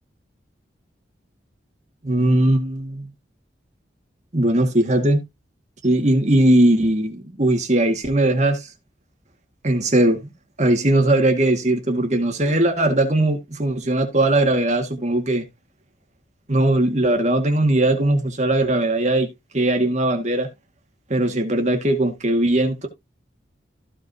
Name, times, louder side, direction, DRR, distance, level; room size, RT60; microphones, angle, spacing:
voice 1, 2.0-3.1 4.3-5.2 5.8-8.7 9.6-10.3 10.6-15.4 16.5-19.3 19.5-20.5 21.1-22.9, right 1 dB, 40° right, 2.1 m, -19 dB
14.5 x 5.4 x 2.9 m
head